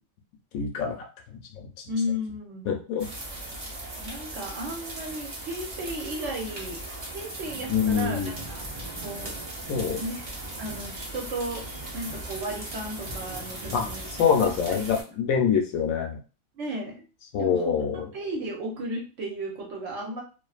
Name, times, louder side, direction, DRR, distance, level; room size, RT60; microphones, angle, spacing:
voice 1, 0.5-1.7 2.7-3.1 7.7-8.3 9.7-10.0 13.7-16.2 17.3-18.0, left 7 dB, 70° left, 3 dB, 1.0 m, -25 dB
voice 2, 1.9-2.7 4.0-6.8 7.1-8.7 9.0-9.4 10.0-10.2 10.6-14.1 14.4-14.8 16.6-17.0 17.4-20.2, equal, 65° right, 0 dB, 0.9 m, -34 dB
sound 1, 3.0-15.0, right 1 dB, 45° right, 0.4 m, -38 dB
2.5 x 2.5 x 2.3 m, 0.34 s
omnidirectional pair, 1.6 m